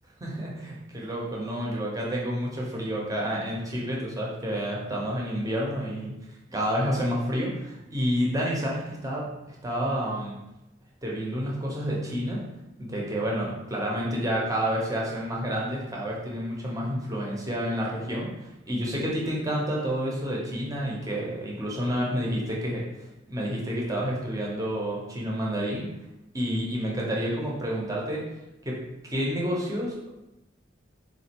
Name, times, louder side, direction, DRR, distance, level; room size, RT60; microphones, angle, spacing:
voice 1, 0.2-6.1 6.5-10.4 11.0-12.4 12.8-25.9 26.3-28.2 28.6-30.1, equal, 20° right, -3 dB, 0.7 m, -29 dB
4.2 x 2.3 x 2.8 m, 0.93 s
head